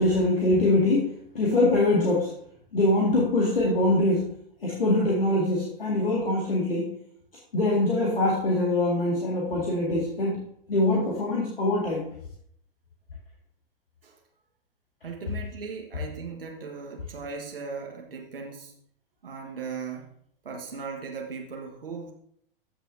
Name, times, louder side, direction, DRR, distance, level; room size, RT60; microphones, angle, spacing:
voice 1, 0.0-2.3 2.7-4.3 4.6-6.9 7.5-10.4 10.7-12.1, left 2 dB, 70° left, -3 dB, 2.1 m, -23 dB
voice 2, 15.0-18.7 19.2-20.1 20.4-22.1, right 5 dB, 70° right, 1 dB, 1.5 m, -37 dB
14.0 x 6.3 x 2.7 m, 0.67 s
figure-of-eight pair, 100°, 29 cm